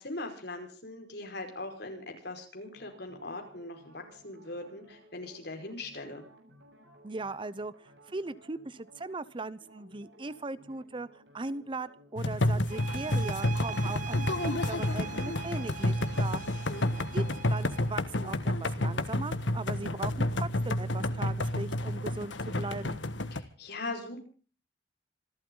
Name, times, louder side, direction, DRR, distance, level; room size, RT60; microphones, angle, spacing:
voice 1, 0.0-6.2 16.4-16.9 23.3-24.2, left 2 dB, 60° left, 4 dB, 5.1 m, -40 dB
sound 1, 2.7-21.4, equal, 70° right, 7.5 m, -58 dB
voice 2, 7.0-16.4 17.1-23.0, right 3 dB, 25° right, 17 dB, 0.7 m, -39 dB
sound 2, 12.2-23.4, left 1 dB, 90° left, 1.5 m, -30 dB
sound 3, 12.7-18.0, right 8 dB, 45° right, 1.0 m, -43 dB
26.5 x 12.5 x 3.9 m, 0.40 s
head